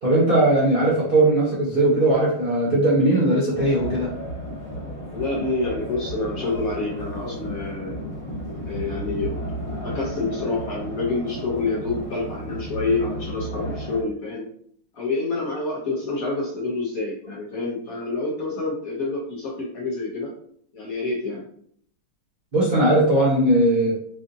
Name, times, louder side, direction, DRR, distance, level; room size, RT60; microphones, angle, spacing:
voice 1, 0.0-4.1 22.5-24.0, right 1 dB, 70° right, -6 dB, 0.5 m, -19 dB
sound 1, 3.5-14.0, equal, 20° left, 0.8 m, -33 dB
voice 2, 5.1-8.0 8.7-9.4 9.8-14.5 14.9-20.3 20.7-21.4, left 3 dB, 70° left, -3 dB, 0.8 m, -27 dB
4.9 x 2.5 x 2.5 m, 0.64 s
omnidirectional pair, 2.4 m